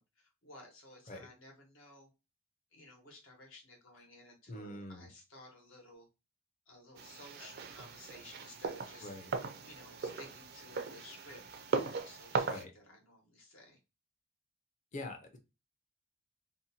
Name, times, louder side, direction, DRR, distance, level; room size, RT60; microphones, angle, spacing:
voice 1, 0.0-2.1 2.7-6.1 6.7-9.1 9.6-11.4 11.8-13.8, left 2 dB, 80° left, 1 dB, 1.1 m, -55 dB
voice 2, 4.5-5.1 9.0-9.3 12.5-12.7 14.9-15.4, left 1 dB, 40° left, 4 dB, 0.5 m, -44 dB
sound 1, 7.0-12.6, right 4 dB, 50° right, 0.4 m, -39 dB
2.6 x 2.2 x 2.7 m, 0.27 s
head